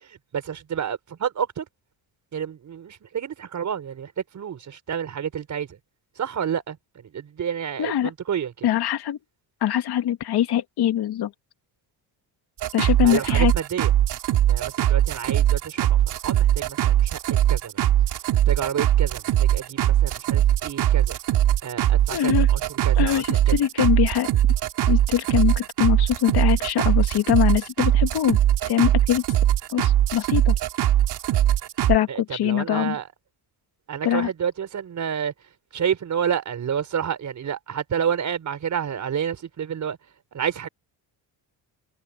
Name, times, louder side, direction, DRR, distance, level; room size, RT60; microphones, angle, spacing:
voice 1, 0.0-1.7 2.3-5.8 6.2-8.7 13.0-13.9 14.5-17.2 17.5-17.8 18.5-21.2 21.6-23.6 32.1-33.1 33.9-35.3 35.7-40.0 40.3-40.7, right 8 dB, 45° right, 5.5 m, -29 dB
voice 2, 7.8-8.1 8.6-9.2 9.6-11.3 12.7-13.5 22.1-22.5 23.0-24.3 24.9-28.4 28.7-29.2 29.7-30.5 31.9-33.0 34.0-34.3, left 11 dB, 65° left, 2.4 m, -23 dB
sound 1, 12.6-32.0, right 12 dB, 70° right, 3.2 m, -21 dB
cardioid pair, 150°, 41 cm